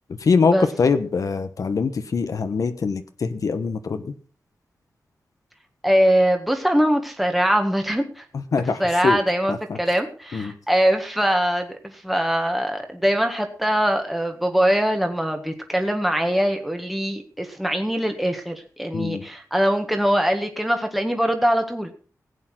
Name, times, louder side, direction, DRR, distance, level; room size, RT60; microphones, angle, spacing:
voice 1, 0.2-0.5 0.8-4.0 8.5-8.8 9.0-9.2 10.3-10.5 18.9-19.2, left 5 dB, 70° left, 9 dB, 1.1 m, -22 dB
voice 2, 5.8-8.2 8.6-21.9, equal, ahead, 4 dB, 1.7 m, -22 dB
16.0 x 8.5 x 5.9 m, 0.39 s
wide cardioid pair, 100°, 6 cm